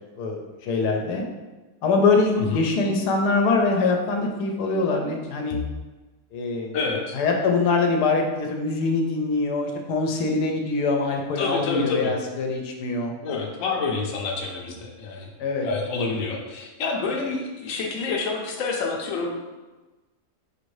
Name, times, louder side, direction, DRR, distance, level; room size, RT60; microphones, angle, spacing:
voice 1, 0.1-1.2 1.8-5.6 6.3-6.8 7.1-13.1 15.4-15.7, left 3 dB, 85° left, 2 dB, 1.2 m, -23 dB
voice 2, 6.7-7.2 11.4-12.1 13.2-15.3 15.6-19.4, left 4 dB, 65° left, 0 dB, 0.9 m, -28 dB
4.7 x 2.6 x 3.1 m, 1.2 s
omnidirectional pair, 1.7 m